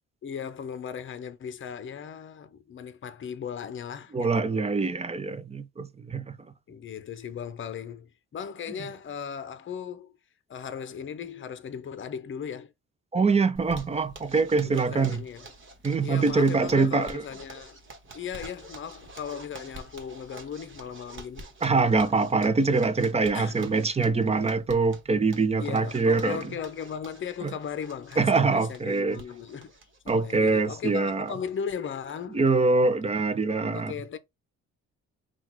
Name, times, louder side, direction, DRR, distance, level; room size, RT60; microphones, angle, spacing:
voice 1, 0.2-4.5 6.7-10.1 10.5-12.7 14.6-15.5 16.0-17.8 18.1-21.5 23.3-23.6 25.6-29.7 30.0-32.4 33.7-34.2, left 7 dB, 40° left, 0.7 m, -37 dB
voice 2, 4.1-6.3 13.1-15.2 15.8-17.2 21.6-26.5 27.4-27.5 28.2-29.2 30.1-31.3 32.3-33.9, right 4 dB, 20° right, 0.6 m, -24 dB
Zipper (clothing), 13.6-31.7 32.1-32.2 32.5-32.6 32.9-33.3, right 2 dB, 40° right, 1.4 m, -48 dB
3.8 x 2.4 x 4.5 m
cardioid pair, 90°, 30 cm